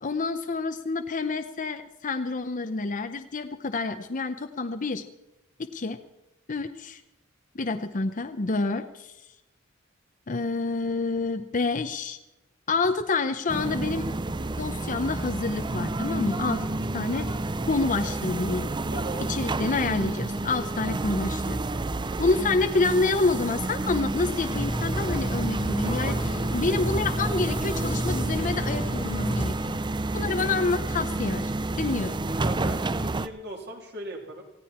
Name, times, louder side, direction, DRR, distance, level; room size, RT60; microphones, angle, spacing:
voice 1, 0.0-5.0 5.6-6.0 6.5-7.0 7.5-9.1 10.3-12.2 12.7-14.1 14.6-17.3 17.7-18.7 19.3-21.6 22.2-26.1 26.5-29.8 30.1-31.5 31.8-32.2, left 3 dB, 40° left, 8 dB, 0.7 m, -28 dB
sound 1, 13.5-33.3, right 2 dB, 20° right, 0.5 m, -30 dB
voice 2, 18.9-19.3 25.8-26.2 32.4-34.4, right 1 dB, 55° right, 1 dB, 3.3 m, -37 dB
sound 2, 24.5-29.5, equal, 25° left, 1.7 m, -31 dB
19.0 x 15.5 x 4.3 m, 0.94 s
head